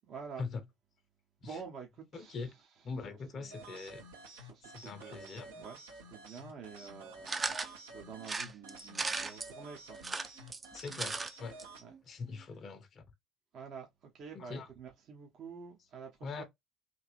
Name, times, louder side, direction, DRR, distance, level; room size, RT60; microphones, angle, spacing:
voice 1, 0.0-0.4 1.4-2.5 3.3-3.8 4.3-10.0 11.8-11.9 13.5-16.4, right 6 dB, 50° right, 0.9 m, -49 dB
voice 2, 2.1-2.5 2.8-4.0 4.6-5.6 10.7-11.6 12.1-13.0 14.3-14.7 16.2-16.4, left 4 dB, 45° left, 0.6 m, -42 dB
sound 1, 3.5-11.8, right 2 dB, 80° right, 0.9 m, -51 dB
sound 2, 7.3-7.7 8.2-9.5 10.0-11.3 11.6-11.7 11.9-12.0, right 3 dB, 25° right, 0.5 m, -36 dB
3.2 x 2.8 x 2.5 m
figure-of-eight pair, 55°, 0 cm